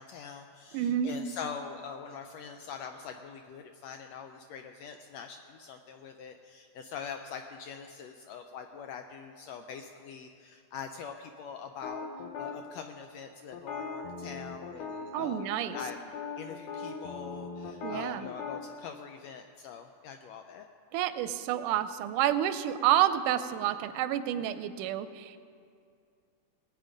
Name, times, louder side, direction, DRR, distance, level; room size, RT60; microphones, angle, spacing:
voice 1, 0.0-12.1 12.4-15.4 15.7-16.0 16.4-20.7, left 6 dB, 80° left, 5 dB, 1.5 m, -43 dB
voice 2, 0.7-1.1 15.1-15.8 17.8-18.3 20.9-25.4, right 11 dB, 90° right, 11 dB, 2.1 m, -29 dB
sound 1, 11.8-12.6 13.5-15.5 15.7-15.9 16.1-18.6, left 5 dB, 60° left, 1.5 m, -39 dB
19.5 x 8.8 x 5.1 m, 2.3 s
omnidirectional pair, 3.5 m